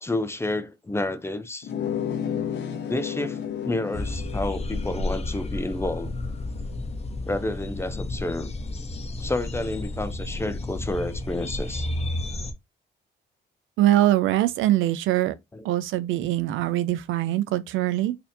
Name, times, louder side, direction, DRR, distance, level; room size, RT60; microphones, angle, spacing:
voice 1, 0.0-1.7 2.9-3.4 3.7-6.1 7.3-8.5 9.2-11.9 15.5-15.6, left 2 dB, 15° left, 0.4 m, -30 dB
sound 1, 1.6-6.9, left 8 dB, 60° left, 0.8 m, -33 dB
sound 2, 3.9-12.5, left 2 dB, 30° left, 0.8 m, -32 dB
voice 2, 13.8-15.3 15.6-18.1, right 14 dB, 85° right, 0.5 m, -23 dB
4.1 x 2.8 x 2.6 m
cardioid pair, 90°, 20 cm